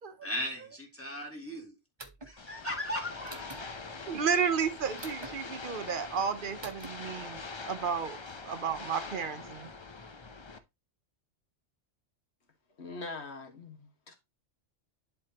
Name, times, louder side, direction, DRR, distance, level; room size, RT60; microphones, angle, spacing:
voice 1, 0.2-1.8 2.2-3.8, left 1 dB, 10° left, 2.2 m, -37 dB
sound 1, 2.0-2.3 3.3-3.6 5.0-5.3 6.6-6.9, right 3 dB, 25° right, 0.9 m, -45 dB
sound 2, 2.4-10.6, left 4 dB, 30° left, 0.6 m, -44 dB
voice 2, 4.1-8.2 8.5-9.7, right 6 dB, 50° right, 0.9 m, -32 dB
voice 3, 12.8-14.1, left 3 dB, 65° left, 1.9 m, -42 dB
11.0 x 4.4 x 2.9 m
omnidirectional pair, 1.2 m